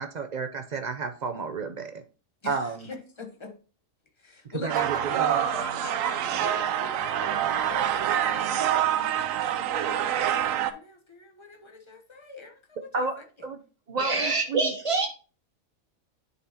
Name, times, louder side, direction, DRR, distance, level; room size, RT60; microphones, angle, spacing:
voice 1, 0.0-2.0 2.4-2.9 4.6-5.5 12.9-13.6 13.9-14.7, right 4 dB, 55° right, 0.5 m, -32 dB
voice 2, 2.4-3.5 4.2-7.9 8.3-13.2, left 3 dB, 25° left, 0.9 m, -43 dB
sound 1, 4.7-10.7, right 10 dB, 75° right, 0.9 m, -26 dB
voice 3, 14.0-15.1, right 3 dB, 25° right, 1.1 m, -26 dB
10.0 x 4.1 x 2.8 m
omnidirectional pair, 1.4 m